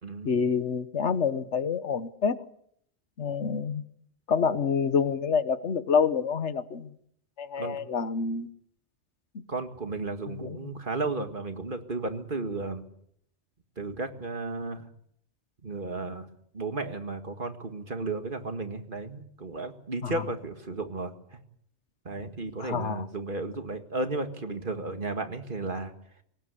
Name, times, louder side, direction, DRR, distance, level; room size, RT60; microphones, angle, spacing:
voice 1, 0.2-2.4 3.2-3.8 4.3-6.9 7.4-8.5 10.3-10.7 20.0-20.1 22.6-23.0, left 6 dB, 85° left, 13 dB, 1.5 m, -27 dB
voice 2, 9.5-12.8 13.8-14.9 15.6-16.3 16.5-21.4 22.1-25.9, right 3 dB, 50° right, 7 dB, 2.1 m, -34 dB
22.5 x 18.5 x 8.4 m, 0.69 s
omnidirectional pair, 1.1 m